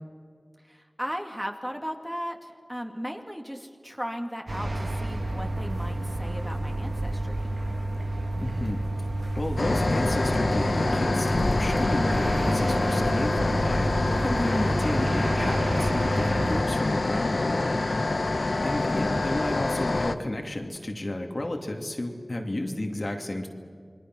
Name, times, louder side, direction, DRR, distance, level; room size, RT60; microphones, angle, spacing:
voice 1, 0.6-7.4 18.4-18.9, equal, 5° right, 3 dB, 2.4 m, -36 dB
sound 1, 4.5-16.6, right 1 dB, 70° right, 2.3 m, -30 dB
voice 2, 8.4-8.8 9.4-17.8 18.6-23.5, left 1 dB, 55° left, 2 dB, 2.7 m, -32 dB
sound 2, 9.6-20.2, left 2 dB, 85° left, 1.0 m, -26 dB
28.5 x 22.0 x 6.2 m, 2.1 s
wide cardioid pair, 45°, 0 cm